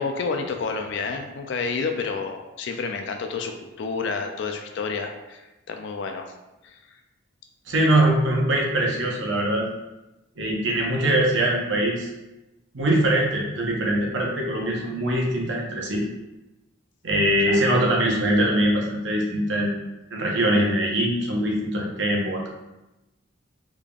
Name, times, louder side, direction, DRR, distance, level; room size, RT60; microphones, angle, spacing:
voice 1, 0.0-6.3 6.6-6.8 17.4-17.6, left 4 dB, 55° left, 5 dB, 0.3 m, -30 dB
voice 2, 7.7-9.6 10.4-12.1 12.7-16.0 17.0-19.8 20.1-22.5, right 1 dB, 60° right, -2 dB, 0.7 m, -22 dB
3.5 x 3.5 x 2.3 m, 1.0 s
head